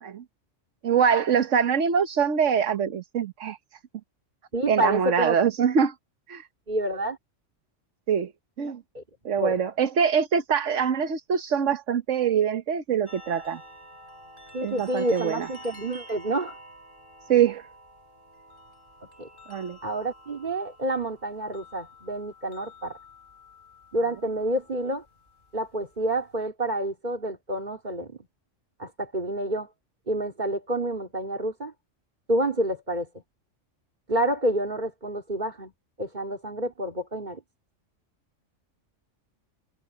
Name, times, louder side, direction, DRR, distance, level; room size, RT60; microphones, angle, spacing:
voice 1, 0.8-3.6 4.7-5.9 6.3-6.5 8.1-8.3 8.6-8.8 9.2-13.6 14.6-15.5 17.3-17.7 19.5-19.8, right 7 dB, 75° right, 1.4 m, -24 dB
voice 2, 4.5-5.4 6.7-7.2 8.9-9.0 9.4-9.5 14.5-16.6 19.2-19.3 19.8-23.0 23.9-25.0 25.5-28.2 28.8-29.7 30.1-31.7 32.3-33.1 34.1-35.7 36.0-37.4, right 1 dB, 35° right, 3.1 m, -28 dB
sound 1, 13.1-26.4, equal, 40° left, 6.9 m, -49 dB
omnidirectional pair, 1.3 m